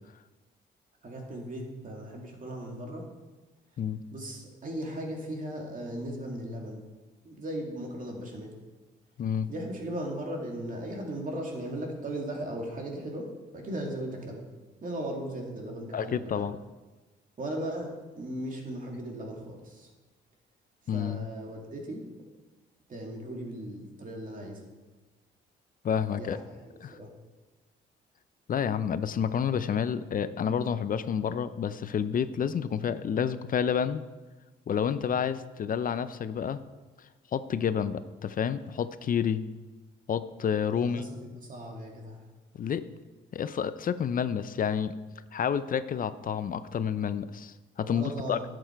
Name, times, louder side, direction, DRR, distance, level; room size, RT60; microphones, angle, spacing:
voice 1, 1.0-3.1 4.1-6.8 7.2-8.5 9.5-13.3 13.5-14.4 14.8-16.4 17.4-19.9 20.9-22.0 22.9-24.6 26.2-27.1 40.7-42.2 47.8-48.4, right 1 dB, 40° right, 0 dB, 2.6 m, -37 dB
voice 2, 9.2-9.5 15.9-16.6 20.9-21.2 25.8-26.4 26.8-27.0 28.5-34.0 34.7-36.6 37.3-39.4 40.1-41.0 42.5-42.8 43.3-44.9 45.3-48.4, left 7 dB, 45° left, 14 dB, 0.5 m, -29 dB
11.0 x 7.9 x 4.6 m, 1.2 s
cardioid pair, 90°, 20 cm